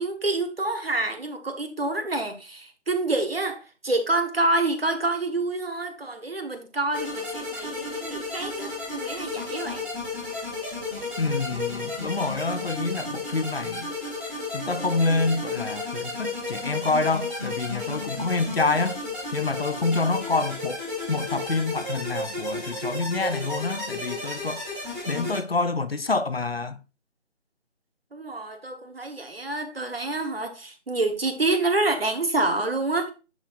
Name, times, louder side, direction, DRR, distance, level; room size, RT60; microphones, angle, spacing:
voice 1, 0.0-9.9 28.1-33.1, right 2 dB, 55° right, 1.3 m, -27 dB
sound 1, 6.9-25.4, left 2 dB, 10° right, 2.3 m, -33 dB
voice 2, 11.2-13.9 14.5-19.0 19.3-24.6 25.1-26.8, left 3 dB, 55° left, 0.6 m, -27 dB
10.5 x 4.3 x 2.5 m
figure-of-eight pair, 160°, 36 cm